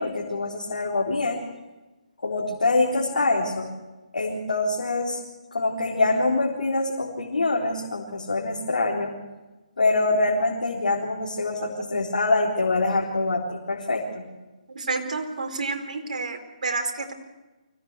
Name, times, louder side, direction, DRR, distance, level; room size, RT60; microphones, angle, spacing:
voice 1, 0.0-1.4 2.2-3.7 4.1-5.2 5.5-9.1 9.8-14.2, left 2 dB, 75° left, -2 dB, 3.9 m, -25 dB
voice 2, 14.7-17.1, right 3 dB, 65° right, 3 dB, 4.5 m, -29 dB
24.5 x 17.5 x 8.2 m, 1.1 s
figure-of-eight pair, 150°, 4 cm